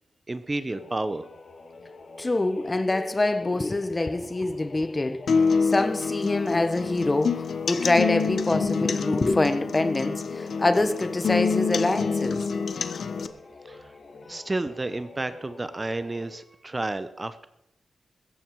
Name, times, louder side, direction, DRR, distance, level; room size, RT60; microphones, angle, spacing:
voice 1, 0.3-1.3 13.6-14.0 14.3-17.5, right 2 dB, 20° right, 0.8 m, -31 dB
sound 1, 0.7-16.4, left 3 dB, 50° left, 2.0 m, -45 dB
voice 2, 2.2-5.3 5.6-12.5, left 2 dB, 25° left, 1.1 m, -25 dB
sound 2, 5.3-13.3, left 5 dB, 65° left, 0.9 m, -27 dB
16.0 x 14.0 x 4.7 m
wide cardioid pair, 100°, 0 cm